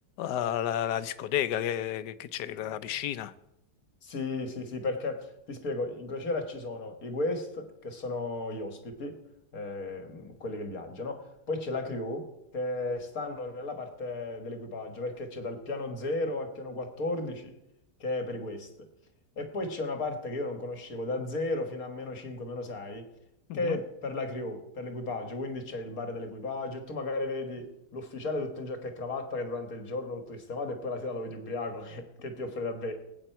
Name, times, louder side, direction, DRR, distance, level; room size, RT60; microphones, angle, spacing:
voice 1, 0.2-3.3 23.5-23.8, left 10 dB, 85° left, 14 dB, 1.3 m, -31 dB
voice 2, 4.0-9.2 9.5-12.3 12.5-17.5 18.0-18.7 19.4-23.1 23.5-32.9, left 2 dB, 60° left, 6 dB, 1.9 m, -34 dB
19.5 x 8.9 x 4.5 m, 0.87 s
omnidirectional pair, 1.7 m